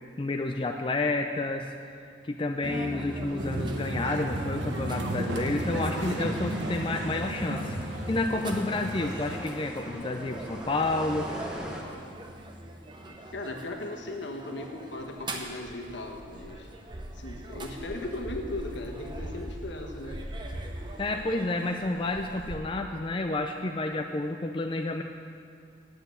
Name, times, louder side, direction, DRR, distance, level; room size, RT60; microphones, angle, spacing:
voice 1, 0.2-7.8 8.1-11.3 21.0-25.0, left 2 dB, 25° left, 4 dB, 0.4 m, -30 dB
sound 1, 2.6-22.6, right 1 dB, 25° right, 0.8 m, -40 dB
sound 2, 3.4-9.4, right 1 dB, 70° right, 0.9 m, -35 dB
sound 3, 4.9-11.8, equal, 5° right, 1.1 m, -42 dB
voice 2, 13.3-16.7 17.1-20.2, left 2 dB, 75° left, 2 dB, 1.3 m, -37 dB
9.3 x 8.0 x 7.9 m, 2.3 s
head